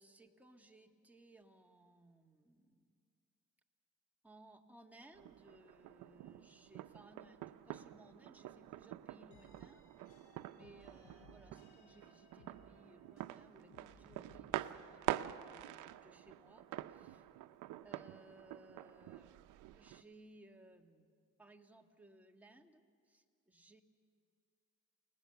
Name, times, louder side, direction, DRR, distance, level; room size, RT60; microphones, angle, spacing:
voice 1, 0.0-2.9 4.2-9.8 10.5-17.2 17.8-19.3 19.7-21.1 21.4-23.8, right 1 dB, 5° right, 2 dB, 1.8 m, -62 dB
sound 1, 5.1-20.0, right 14 dB, 85° right, 0.7 m, -47 dB
sound 2, 9.3-13.4 13.7-14.8, left 2 dB, 90° left, 7.7 m, -64 dB
29.5 x 19.5 x 6.9 m, 2.2 s
cardioid pair, 90°, 30 cm